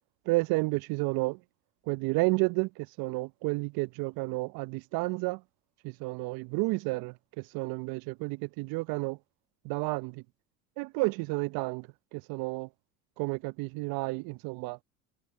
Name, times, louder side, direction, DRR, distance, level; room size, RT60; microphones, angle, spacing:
voice 1, 0.3-1.4 1.9-5.4 5.8-9.2 9.6-10.2 10.8-12.7 13.2-14.8, right 25 dB, 55° right, 1.0 m, -31 dB
hypercardioid pair, 75°, 42 cm